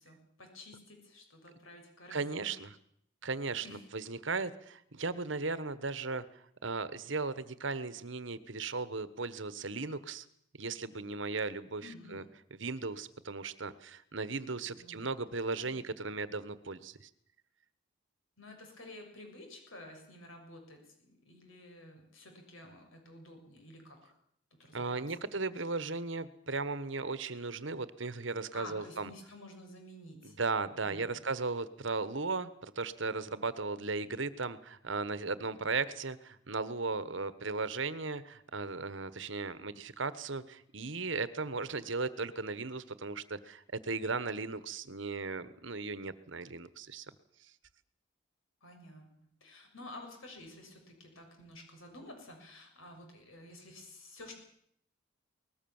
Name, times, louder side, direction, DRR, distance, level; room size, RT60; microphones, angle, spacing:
voice 1, 0.0-2.5 3.6-3.9 11.8-12.2 14.8-15.2 15.6-15.7 18.4-24.1 24.6-25.0 28.5-30.4 30.8-31.2 48.6-49.1 49.4-54.3, left 1 dB, 85° left, 3 dB, 6.5 m, -51 dB
voice 2, 2.1-2.7 3.2-3.7 3.9-6.2 6.6-10.3 10.6-12.2 12.5-17.1 24.7-29.1 30.2-47.1, right 3 dB, 70° right, 15 dB, 1.3 m, -36 dB
22.0 x 20.0 x 7.2 m, 0.69 s
head